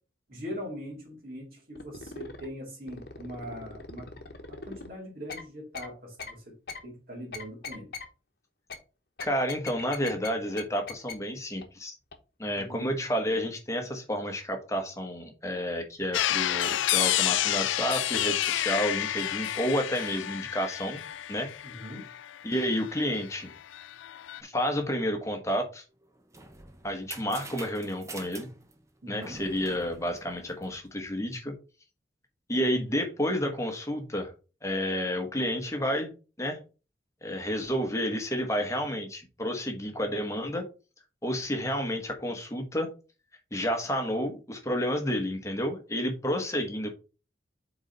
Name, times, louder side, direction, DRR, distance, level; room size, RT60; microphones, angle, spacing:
voice 1, 0.3-4.1 4.5-6.6 6.8-7.9 12.6-12.9 21.6-22.1 29.0-29.4, equal, 50° right, 2.3 m, -41 dB
sound 1, 1.8-2.5 2.9-4.9 5.3-5.4 5.7-5.9 6.2-6.3 6.7-6.8 7.3-8.1 8.7-8.8 9.2-10.3 10.6-10.7 10.9-11.1 11.6-11.7 12.1-12.2 12.6-12.7, left 4 dB, 55° left, 1.0 m, -40 dB
voice 2, 9.2-11.9 12.4-21.0 21.3-21.5 22.4-23.5 24.4-25.8 26.8-28.5 29.1-31.5 32.5-34.3 34.6-36.6 37.2-40.6 41.2-42.9 43.5-46.9, equal, 15° left, 1.1 m, -30 dB
sound 2, 16.1-23.3 23.6-24.4, left 13 dB, 90° left, 0.3 m, -30 dB
sound 3, 26.0-31.0, right 3 dB, 15° right, 0.7 m, -46 dB
4.8 x 4.0 x 5.1 m
head